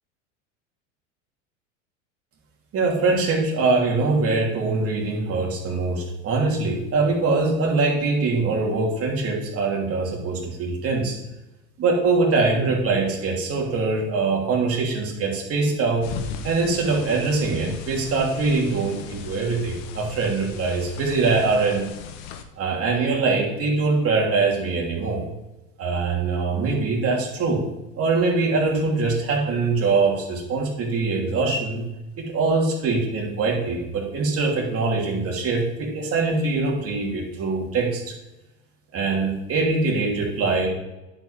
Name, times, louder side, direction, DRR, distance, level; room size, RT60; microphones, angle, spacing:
voice 1, 2.7-11.2 11.8-16.1 16.4-21.9 22.6-25.2 25.8-27.6 27.9-31.8 32.2-38.1 38.9-40.7, right 3 dB, 35° right, -1 dB, 2.9 m, -23 dB
sound 1, 16.0-22.4, left 7 dB, 60° left, 1.2 m, -37 dB
10.5 x 5.3 x 5.0 m, 0.98 s
hypercardioid pair, 105°, 39 cm